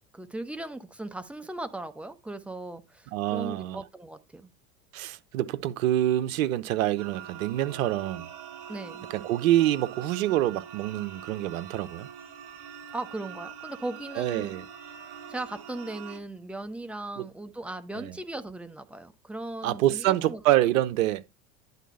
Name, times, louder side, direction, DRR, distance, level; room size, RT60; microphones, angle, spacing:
voice 1, 0.1-4.5 8.7-9.1 12.9-14.5 15.3-20.4, right 2 dB, 5° right, 0.9 m, -38 dB
voice 2, 3.1-3.8 4.9-8.3 9.1-12.1 14.2-14.6 17.2-17.3 18.0-18.1 19.6-21.2, right 14 dB, 65° right, 0.8 m, -26 dB
sound 1, 7.0-16.2, right 9 dB, 50° right, 1.2 m, -44 dB
10.0 x 4.1 x 5.4 m
figure-of-eight pair, 75°, 43 cm